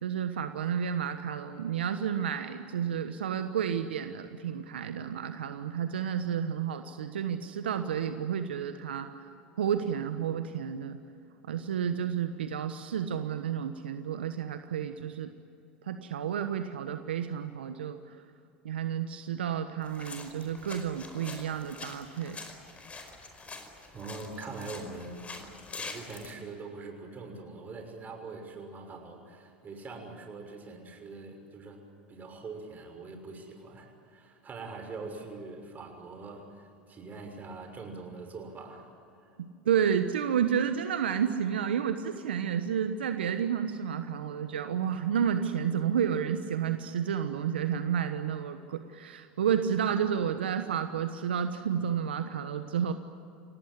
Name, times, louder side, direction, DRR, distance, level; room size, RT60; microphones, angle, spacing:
voice 1, 0.0-9.1 9.6-11.0 11.4-15.3 15.8-18.2 18.6-22.4 39.4-52.9, right 8 dB, 80° right, 8 dB, 1.2 m, -31 dB
sound 1, 19.8-26.3, left 3 dB, 25° left, 5.0 m, -45 dB
voice 2, 23.9-25.2 25.8-31.8 32.1-38.9, right 3 dB, 30° right, 5 dB, 6.3 m, -43 dB
28.5 x 18.0 x 9.8 m, 2.6 s
hypercardioid pair, 85°, 6 cm